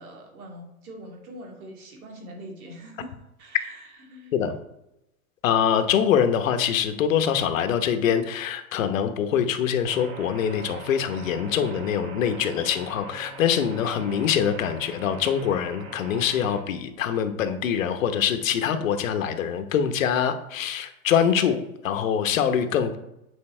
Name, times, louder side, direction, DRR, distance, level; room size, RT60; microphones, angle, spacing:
voice 1, 0.0-4.4, equal, 90° right, 1 dB, 2.6 m, -43 dB
voice 2, 5.4-23.0, left 8 dB, 65° left, 8 dB, 1.0 m, -24 dB
sound 1, 9.8-16.6, right 3 dB, 70° right, 1.5 m, -41 dB
8.5 x 4.4 x 4.3 m, 0.88 s
supercardioid pair, 170°, 42 cm